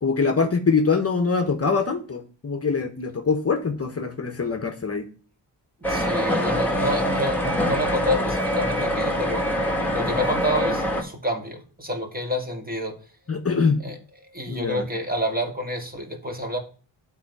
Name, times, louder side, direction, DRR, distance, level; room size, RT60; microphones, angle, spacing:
voice 1, 0.0-5.1 13.3-13.8 14.5-14.9, left 4 dB, 35° left, 7 dB, 1.1 m, -23 dB
sound 1, 5.8-11.0, equal, 5° left, 1.8 m, -24 dB
voice 2, 5.9-9.5 9.9-13.0 13.8-14.0 14.3-16.6, equal, 20° right, 3 dB, 2.0 m, -28 dB
8.4 x 4.1 x 4.8 m, 0.39 s
cardioid pair, 60°, 43 cm